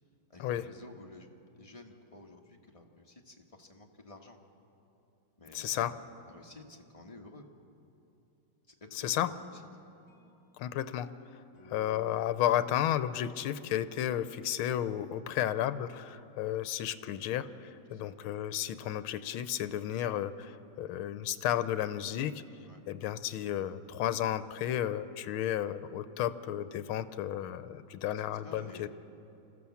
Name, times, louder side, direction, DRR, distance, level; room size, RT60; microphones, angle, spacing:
voice 1, 0.3-4.4 5.4-6.0 6.3-7.4 8.7-9.6 15.1-15.4 17.9-18.1 22.6-22.8 28.3-28.9, left 2 dB, 20° left, 1 dB, 1.1 m, -52 dB
voice 2, 5.5-5.9 8.9-9.3 10.6-11.1 11.7-22.3 22.9-28.9, left 11 dB, 80° left, 13 dB, 1.5 m, -33 dB
sound 1, 9.4-14.3, left 5 dB, 45° left, 2.8 m, -59 dB
26.0 x 14.5 x 7.1 m, 2.7 s
omnidirectional pair, 2.3 m